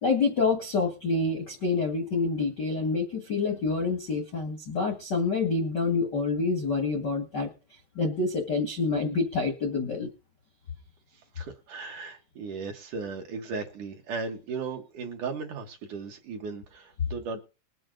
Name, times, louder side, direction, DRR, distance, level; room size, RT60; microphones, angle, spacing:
voice 1, 0.0-7.5 7.9-10.1, left 4 dB, 55° left, 1.2 m, -27 dB
voice 2, 11.1-17.4, right 4 dB, 60° right, 2.3 m, -36 dB
21.5 x 7.7 x 3.9 m
omnidirectional pair, 4.7 m